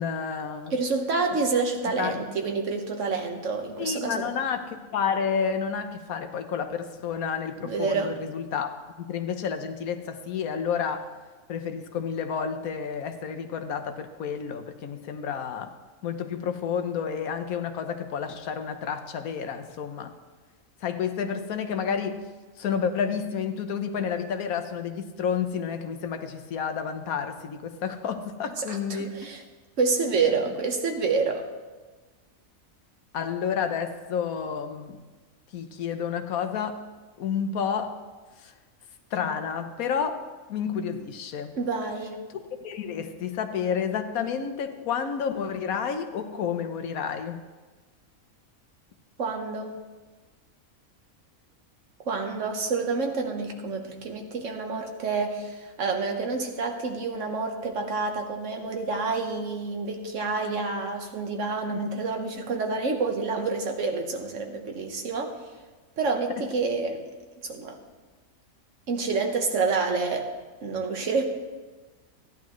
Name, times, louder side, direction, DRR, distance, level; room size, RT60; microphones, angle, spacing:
voice 1, 0.0-0.7 2.0-2.2 3.8-11.1 11.5-15.7 16.0-20.1 20.8-22.3 22.6-29.3 33.1-35.0 35.5-36.8 37.2-38.0 38.4-38.5 39.1-40.2 40.5-41.6 42.6-47.4 61.7-61.9 66.3-66.5, left 7 dB, 90° left, 8 dB, 1.3 m, -30 dB
voice 2, 0.7-4.3 7.6-8.2 28.6-29.4 29.8-31.4 41.5-42.2 49.2-49.7 52.0-65.4 66.0-67.1 67.4-67.8 68.9-70.3 70.6-71.2, right 4 dB, 65° right, 3 dB, 1.5 m, -28 dB
14.5 x 11.0 x 3.1 m, 1.3 s
omnidirectional pair, 1.5 m